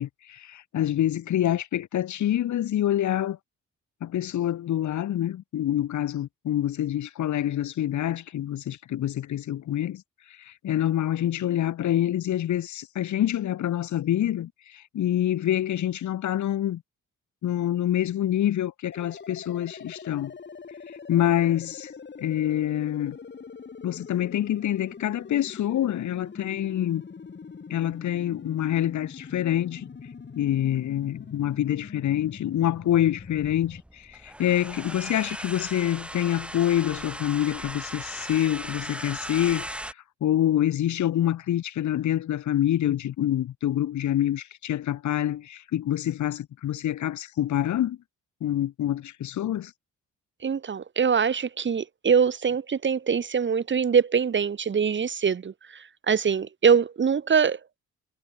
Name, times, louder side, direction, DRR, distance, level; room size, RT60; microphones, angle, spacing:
voice 1, 0.0-3.4 4.0-10.0 10.5-16.8 17.4-20.3 21.1-21.9 22.2-23.2 23.8-27.0 27.7-29.9 30.3-39.7 40.2-48.0 48.4-49.7, left 12 dB, 70° left, 3.1 m, -26 dB
sound 1, 18.9-33.8, left 5 dB, 35° left, 5.5 m, -43 dB
sound 2, 33.2-39.9, right 1 dB, 5° right, 2.2 m, -38 dB
voice 2, 50.4-57.6, right 6 dB, 40° right, 1.6 m, -23 dB
cardioid pair, 90°, 30 cm